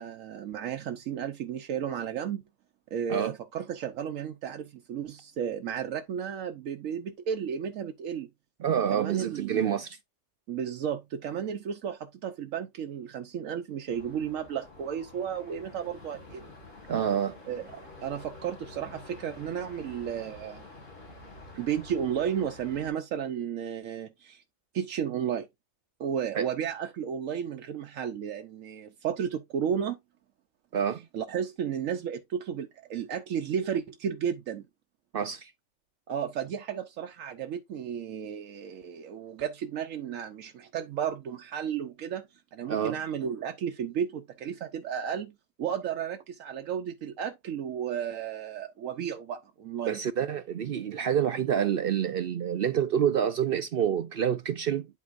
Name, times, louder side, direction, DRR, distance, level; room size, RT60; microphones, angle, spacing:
voice 1, 0.0-2.4 2.9-8.3 8.9-9.6 10.5-16.5 17.5-20.6 21.5-24.4 24.7-25.5 26.0-30.0 31.1-34.6 36.1-42.2 42.5-45.3 45.6-50.0, right 8 dB, 85° right, 1.1 m, -33 dB
voice 2, 8.6-10.0 16.9-17.4 26.4-26.5 30.7-31.1 35.1-35.5 42.7-43.0 49.9-54.9, right 8 dB, 60° right, 0.6 m, -27 dB
sound 1, 13.9-22.9, left 2 dB, 70° left, 2.8 m, -49 dB
11.0 x 4.6 x 2.5 m
omnidirectional pair, 1.3 m